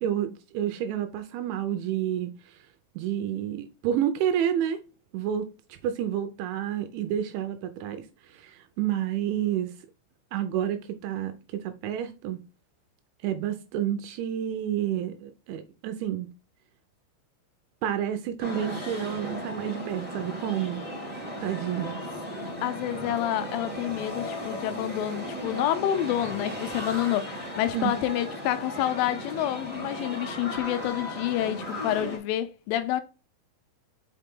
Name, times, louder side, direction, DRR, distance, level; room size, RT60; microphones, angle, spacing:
voice 1, 0.0-2.6 3.0-4.8 5.1-9.7 10.3-12.4 13.2-16.3 17.8-20.8 21.4-22.0 27.7-28.0, right 10 dB, 80° right, 2.8 m, -30 dB
sound 1, 18.4-32.2, equal, 10° right, 2.6 m, -36 dB
voice 2, 22.6-33.0, left 12 dB, 80° left, 3.0 m, -28 dB
5.9 x 5.7 x 3.6 m
omnidirectional pair, 5.9 m